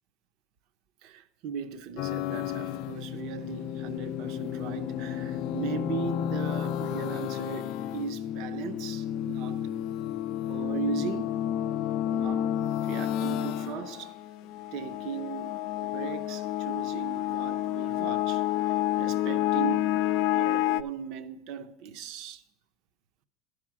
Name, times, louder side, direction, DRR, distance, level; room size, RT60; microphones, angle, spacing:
voice 1, 1.0-9.7 10.5-11.3 12.1-12.5 12.8-14.2 14.4-19.9 20.3-22.4, right 6 dB, 55° right, 0.6 m, -38 dB
sound 1, 2.0-20.8, left 12 dB, 50° left, 0.3 m, -30 dB
11.5 x 4.9 x 7.4 m
cardioid pair, 150°, 0 cm